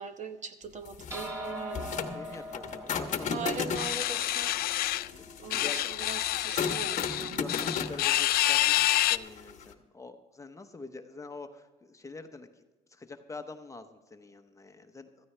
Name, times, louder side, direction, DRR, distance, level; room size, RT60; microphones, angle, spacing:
voice 1, 0.0-2.4 3.3-4.6 5.4-7.7, right 5 dB, 45° right, 8 dB, 1.1 m, -41 dB
sound 1, 0.9-9.7, left 6 dB, 45° left, 1.0 m, -36 dB
sound 2, 1.1-5.8, equal, 15° right, 4.4 m, -42 dB
voice 2, 2.1-3.5 5.1-5.8 7.3-12.5 12.9-15.3, left 3 dB, 20° left, 7 dB, 0.8 m, -45 dB
sound 3, 3.7-5.1 5.5-9.2, left 15 dB, 65° left, 0.4 m, -28 dB
15.5 x 14.0 x 3.3 m, 1.1 s
cardioid pair, 110°, 17 cm